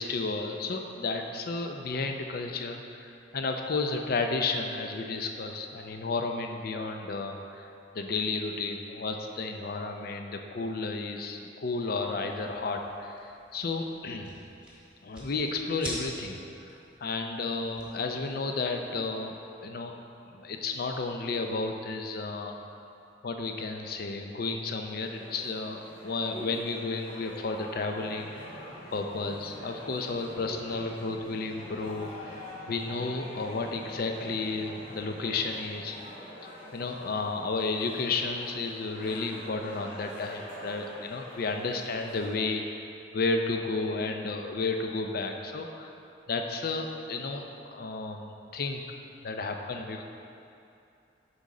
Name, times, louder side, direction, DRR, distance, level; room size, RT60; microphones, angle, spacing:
voice 1, 0.0-7.7 7.9-14.3 15.0-16.4 17.0-19.4 19.6-19.9 20.3-22.5 23.2-32.3 32.7-36.0 36.7-42.6 43.1-45.9 46.3-48.8 49.2-50.0, left 3 dB, 50° left, 4 dB, 0.5 m, -32 dB
sound 1, 12.2-18.9, right 1 dB, 5° right, 1.4 m, -46 dB
sound 2, 25.0-42.4, equal, 30° left, 1.6 m, -46 dB
sound 3, 27.8-36.1, equal, 80° left, 1.6 m, -52 dB
7.1 x 5.3 x 3.7 m, 2.7 s
head